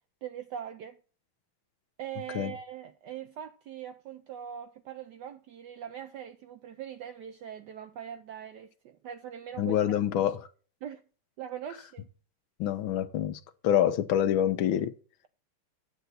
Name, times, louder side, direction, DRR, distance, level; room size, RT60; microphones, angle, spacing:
voice 1, 0.2-1.0 2.0-9.8 10.8-11.0 11.4-12.1, right 9 dB, 80° right, 0.9 m, -41 dB
voice 2, 9.6-10.4 12.6-14.9, left 10 dB, 75° left, 1.4 m, -26 dB
8.1 x 7.8 x 4.0 m
omnidirectional pair, 2.4 m